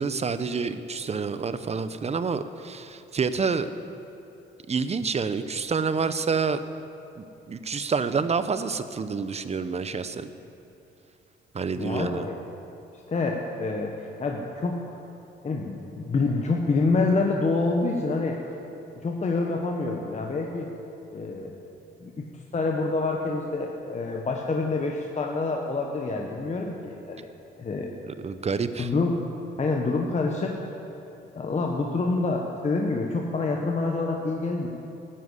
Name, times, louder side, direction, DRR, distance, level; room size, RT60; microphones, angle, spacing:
voice 1, 0.0-3.7 4.7-6.6 7.2-10.3 11.5-12.3 28.0-28.9, right 5 dB, 30° right, 12 dB, 0.8 m, -28 dB
voice 2, 11.7-12.4 13.1-14.8 15.4-18.5 19.0-20.7 21.1-21.5 22.0-22.1 22.5-27.3 27.6-27.9 28.8-29.2 29.6-30.6 31.3-34.7, left 3 dB, 35° left, 1 dB, 1.3 m, -27 dB
13.5 x 10.0 x 8.2 m, 2.7 s
cardioid pair, 90°, 20 cm